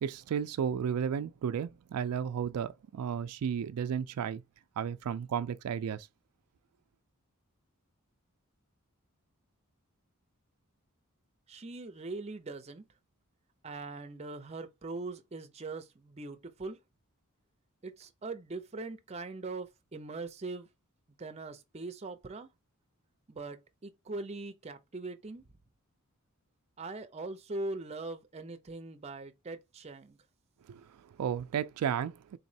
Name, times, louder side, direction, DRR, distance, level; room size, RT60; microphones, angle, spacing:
voice 1, 0.0-4.4 4.8-6.1 30.7-32.4, right 8 dB, 85° right, 0.3 m, -33 dB
voice 2, 11.5-12.8 13.6-16.8 17.8-20.7 21.2-22.5 23.3-25.4 26.8-30.2, right 3 dB, 30° right, 0.5 m, -41 dB
4.0 x 3.0 x 2.7 m
head